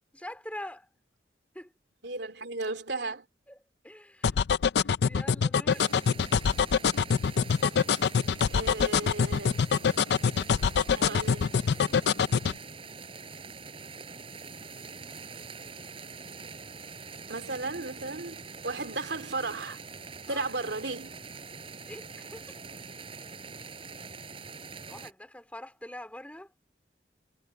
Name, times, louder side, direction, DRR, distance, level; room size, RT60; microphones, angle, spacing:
voice 1, 0.1-0.9 1.5-1.7 3.5-3.6 3.8-4.4 4.8-5.9 20.2-20.5 21.9-22.5 24.9-26.5, left 1 dB, 10° left, 3.9 m, -44 dB
voice 2, 2.0-3.2 8.5-9.6 10.9-11.5 17.3-19.8 20.3-21.1, right 3 dB, 75° right, 2.6 m, -35 dB
sound 1, 4.2-12.6, left 6 dB, 70° left, 0.4 m, -24 dB
sound 2, 5.7-25.1, right 4 dB, 30° right, 4.4 m, -44 dB
head